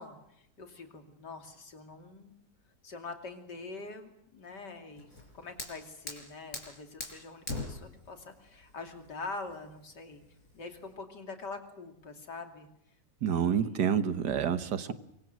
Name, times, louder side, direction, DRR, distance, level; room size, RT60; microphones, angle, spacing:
voice 1, 0.0-2.3 2.8-5.1 5.3-10.2 10.5-12.7 13.2-13.9, left 3 dB, 80° left, 5 dB, 3.4 m, -44 dB
Fire, 5.0-10.9, left 2 dB, 55° left, 5.8 m, -43 dB
voice 2, 13.2-14.9, right 8 dB, 75° right, 11 dB, 1.9 m, -28 dB
25.0 x 23.5 x 7.8 m, 0.76 s
omnidirectional pair, 1.8 m